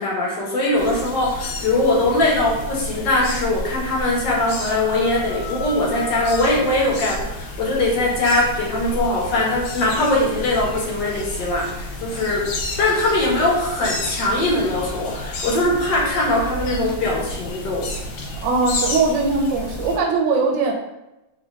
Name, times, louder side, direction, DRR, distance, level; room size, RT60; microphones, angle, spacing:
voice 1, 0.0-12.5 12.8-17.9, left 2 dB, 65° left, -2 dB, 1.6 m, -21 dB
sound 1, 0.8-20.0, left 2 dB, 85° left, 1.6 m, -31 dB
voice 2, 18.4-20.7, right 4 dB, 70° right, 1 dB, 1.2 m, -20 dB
4.3 x 2.5 x 4.5 m, 0.95 s
omnidirectional pair, 2.2 m